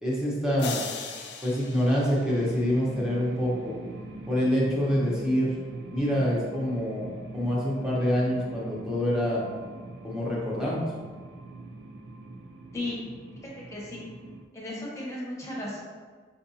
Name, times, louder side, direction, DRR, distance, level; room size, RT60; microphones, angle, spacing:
voice 1, 0.0-0.8 1.4-3.7 4.3-5.5 5.9-7.1 7.3-9.4 10.0-10.8, equal, 5° right, -6 dB, 0.9 m, -26 dB
sound 1, 0.6-2.9, left 5 dB, 70° left, 0.4 m, -39 dB
sound 2, 2.2-14.4, right 2 dB, 65° right, 0.4 m, -42 dB
voice 2, 14.5-15.8, left 1 dB, 15° left, -5 dB, 1.0 m, -34 dB
5.4 x 2.6 x 2.7 m, 1.5 s
head